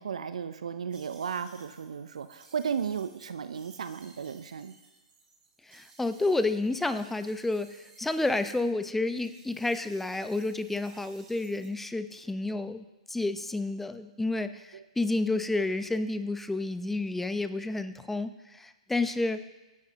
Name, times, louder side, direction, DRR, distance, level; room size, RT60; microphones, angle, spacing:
voice 1, 0.0-4.7 14.7-14.9, right 7 dB, 70° right, 11 dB, 0.7 m, -35 dB
sound 1, 0.9-8.7 9.0-11.7, right 4 dB, 30° right, 5.6 m, -58 dB
voice 2, 5.7-19.4, left 2 dB, 5° left, 11 dB, 0.7 m, -30 dB
23.0 x 10.5 x 3.0 m, 1.1 s
figure-of-eight pair, 115°, 4 cm